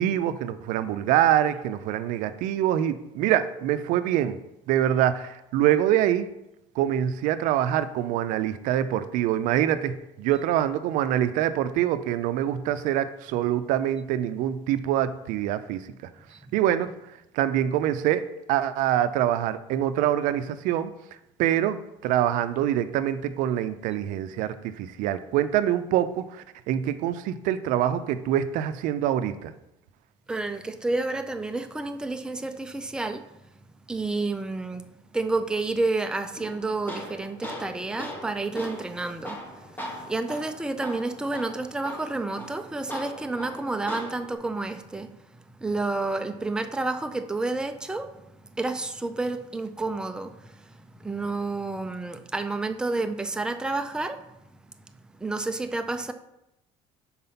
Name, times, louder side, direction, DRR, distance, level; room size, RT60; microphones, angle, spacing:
voice 1, 0.0-4.4 4.7-6.3 6.8-15.9 16.5-16.9 17.3-18.2 18.5-20.9 21.4-29.5, right 11 dB, 80° right, 0.5 m, -25 dB
voice 2, 30.3-33.3 33.9-34.9 35.1-45.3 45.6-48.1 48.5-54.2 55.2-56.1, right 2 dB, 5° right, 0.4 m, -30 dB
Tools, 36.4-44.4, equal, 15° left, 1.4 m, -39 dB
5.5 x 4.2 x 5.6 m
cardioid pair, 115°, 13 cm